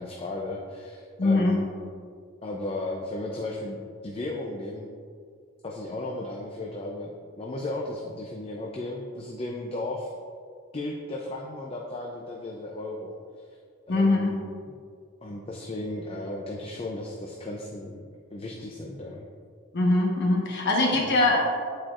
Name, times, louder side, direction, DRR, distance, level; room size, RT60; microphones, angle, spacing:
voice 1, 0.0-1.8 2.4-4.9 5.6-10.1 10.7-13.1 13.9-14.5 15.2-18.0 18.3-19.3 20.9-21.1, left 2 dB, 30° left, -1 dB, 0.5 m, -35 dB
voice 2, 1.2-1.6 13.9-14.3 19.7-21.4, left 2 dB, 55° left, -2 dB, 1.1 m, -22 dB
9.8 x 4.4 x 2.4 m, 2.1 s
head